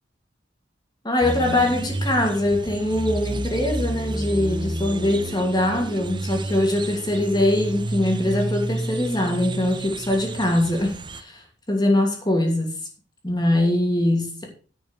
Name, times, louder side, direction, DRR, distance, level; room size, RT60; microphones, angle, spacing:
voice 1, 1.0-12.8 13.2-14.5, left 1 dB, 20° left, 3 dB, 2.7 m, -22 dB
sound 1, 1.2-11.2, right 1 dB, 25° right, 0.8 m, -30 dB
10.5 x 6.1 x 6.3 m, 0.38 s
head